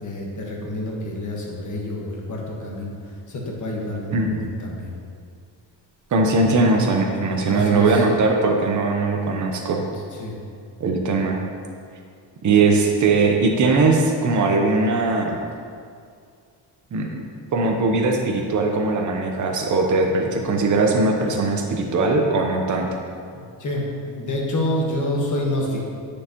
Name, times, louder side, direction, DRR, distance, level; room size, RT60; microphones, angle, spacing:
voice 1, 0.0-3.0 3.3-5.0 7.4-8.0 10.2-10.4 23.3-25.8, left 1 dB, 45° left, -2 dB, 1.3 m, -28 dB
voice 2, 6.1-9.8 10.8-11.4 12.4-15.4 16.9-17.1 17.5-22.9, right 3 dB, 40° right, 2 dB, 0.8 m, -20 dB
9.5 x 6.6 x 2.9 m, 2.3 s
wide cardioid pair, 160°, 44 cm